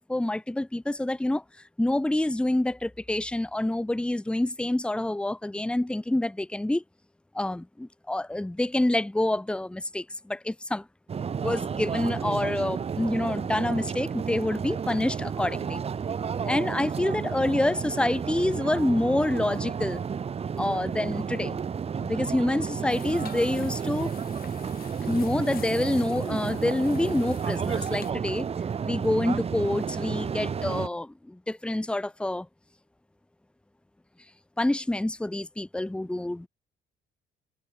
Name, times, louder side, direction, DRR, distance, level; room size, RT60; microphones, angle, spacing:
voice 1, 0.1-1.4 1.8-6.8 7.3-10.9 11.3-15.8 16.4-20.0 20.6-21.6 22.0-24.1 25.1-28.5 28.8-32.5 34.6-36.5, left 1 dB, 5° left, 1.4 m, -27 dB
Canary Wharf, 11.1-30.9, right 6 dB, 35° right, 3.2 m, -31 dB
sound 1, 22.9-28.1, left 11 dB, 60° left, 6.0 m, -49 dB
cardioid pair, 110°, 17 cm